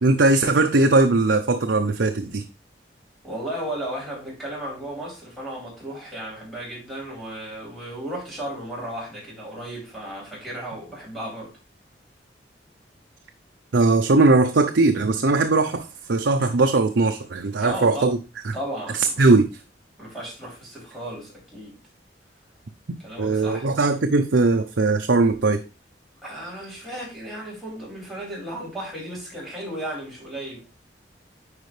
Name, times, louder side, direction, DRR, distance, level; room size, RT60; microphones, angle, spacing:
voice 1, 0.0-2.4 13.7-18.2 18.4-18.5 19.0-19.5 23.2-25.6, right 3 dB, 85° right, 0.7 m, -19 dB
voice 2, 3.2-11.5 17.5-18.1 18.5-19.2 20.0-21.8 23.0-23.7 26.2-30.6, right 1 dB, 5° right, 4.5 m, -34 dB
9.5 x 4.7 x 3.3 m
head